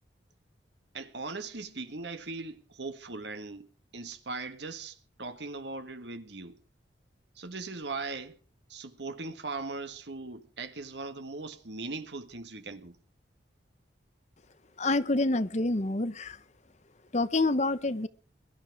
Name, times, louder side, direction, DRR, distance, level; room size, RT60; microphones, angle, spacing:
voice 1, 0.9-3.7 3.9-6.6 7.3-8.4 8.7-13.0, right 3 dB, 65° right, 1.6 m, -39 dB
voice 2, 14.8-16.4 17.1-18.1, left 2 dB, 40° left, 0.9 m, -27 dB
21.5 x 12.0 x 4.7 m
head